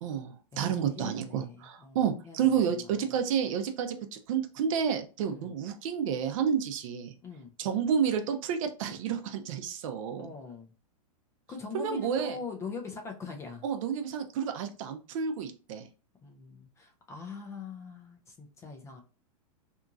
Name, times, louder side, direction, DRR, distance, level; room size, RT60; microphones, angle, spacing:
voice 1, 0.0-7.1 7.6-10.3 11.7-12.4 13.6-15.9, right 7 dB, 60° right, 7 dB, 0.5 m, -30 dB
voice 2, 0.5-2.8 5.3-5.5 7.2-7.5 10.2-10.7 11.5-13.6 16.2-19.0, left 5 dB, 15° left, 3 dB, 0.3 m, -42 dB
2.9 x 2.5 x 2.3 m, 0.35 s
hypercardioid pair, 140°, 20 cm